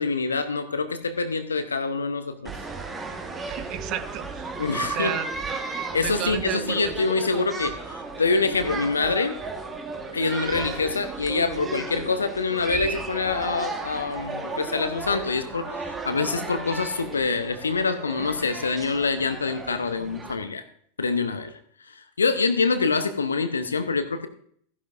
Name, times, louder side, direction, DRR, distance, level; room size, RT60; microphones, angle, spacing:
voice 1, 0.0-2.5 4.6-5.1 5.9-9.4 10.1-20.6 21.0-21.6 21.9-24.3, left 4 dB, 75° left, 10 dB, 0.8 m, -25 dB
sound 1, 2.4-20.3, right 3 dB, 15° right, 1.5 m, -34 dB
voice 2, 3.5-5.3 6.0-6.9, right 12 dB, 40° right, 14 dB, 0.7 m, -32 dB
15.0 x 11.0 x 2.6 m, 0.62 s
figure-of-eight pair, 90°, 0 cm